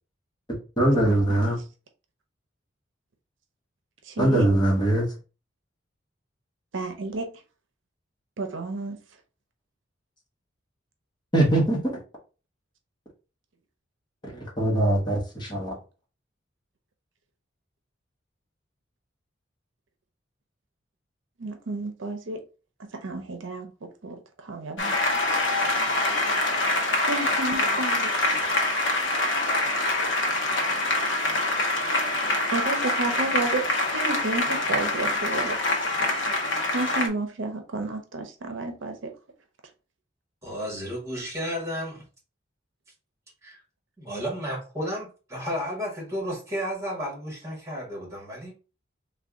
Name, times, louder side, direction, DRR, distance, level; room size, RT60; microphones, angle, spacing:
voice 1, 0.5-1.6 4.2-5.1 11.3-11.9 14.4-15.7, right 1 dB, 25° left, 1.2 m, -22 dB
voice 2, 4.1-4.5 6.7-7.3 8.4-9.0 21.4-22.4 22.9-23.7 24.0-25.0 27.1-28.4 32.5-35.6 36.7-39.1, right 3 dB, 80° right, 0.6 m, -31 dB
Applause, 24.8-37.1, left 2 dB, 65° left, 0.8 m, -25 dB
voice 3, 40.4-42.0 43.4-43.6 44.0-48.5, equal, 15° right, 1.7 m, -32 dB
3.4 x 2.3 x 3.6 m
head